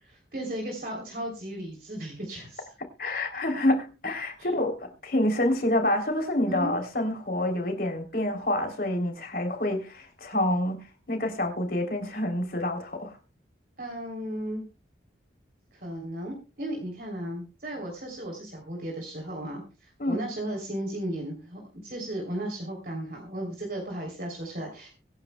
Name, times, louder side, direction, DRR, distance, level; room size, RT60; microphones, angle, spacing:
voice 1, 0.3-2.7 4.4-4.5 6.5-6.7 13.8-14.6 15.7-24.9, right 1 dB, 50° right, 3.5 m, -35 dB
voice 2, 3.0-13.2 20.0-20.2, left 1 dB, 50° left, 3.4 m, -27 dB
24.5 x 10.0 x 2.3 m
head